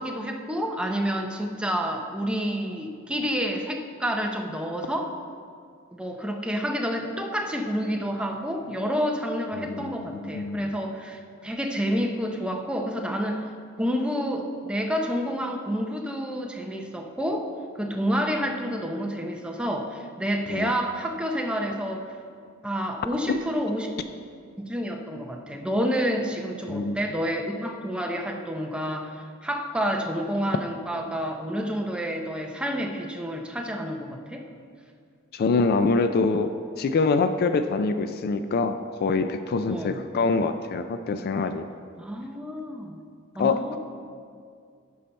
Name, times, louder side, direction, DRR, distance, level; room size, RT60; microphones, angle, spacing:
voice 1, 0.0-5.1 5.9-13.5 13.8-17.5 17.8-22.1 22.6-24.0 24.6-34.4 39.7-40.0 42.0-43.0 43.4-43.8, equal, 5° right, 2 dB, 0.6 m, -29 dB
voice 2, 9.5-10.7 20.5-20.7 23.3-23.4 26.7-27.0 35.3-41.7 43.4-43.8, left 4 dB, 50° left, 10 dB, 0.3 m, -25 dB
11.5 x 5.5 x 4.3 m, 2.3 s
head